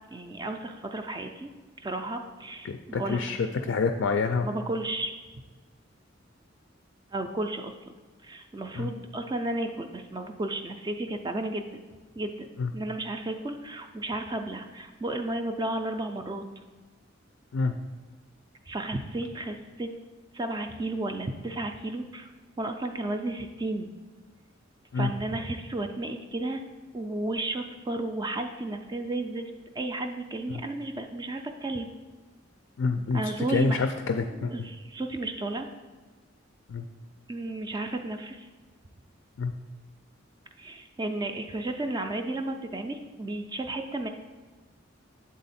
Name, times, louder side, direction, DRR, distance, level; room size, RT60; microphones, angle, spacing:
voice 1, 0.1-1.5 1.8-3.2 3.5-3.7 4.4-5.1 7.1-7.9 8.2-11.8 12.2-12.5 12.7-16.4 18.7-19.9 20.3-22.3 22.6-23.9 25.0-26.6 26.9-29.4 29.7-31.9 33.1-33.8 34.4-35.7 37.3-38.5 40.6-44.1, right 2 dB, 20° right, 5 dB, 0.3 m, -33 dB
voice 2, 2.6-3.4 3.6-4.5 8.8-8.9 12.6-12.7 17.5-17.7 24.9-25.1 32.8-34.7 36.7-36.8 39.4-39.5, left 4 dB, 70° left, 6 dB, 0.4 m, -27 dB
7.7 x 3.7 x 4.2 m, 1.3 s
head